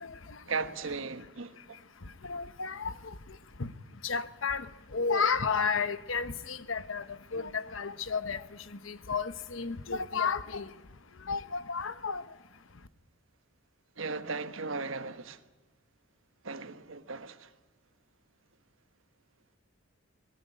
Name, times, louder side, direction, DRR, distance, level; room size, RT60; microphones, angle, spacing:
voice 1, 0.5-1.8 14.0-15.4 16.4-17.5, right 4 dB, 70° right, 1.3 m, -37 dB
voice 2, 2.2-3.1 3.6-3.7 4.0-4.7 4.9-7.0 7.3-8.4 8.9-10.7 11.3-12.2, left 5 dB, 70° left, 1.1 m, -32 dB
23.0 x 18.5 x 9.0 m
head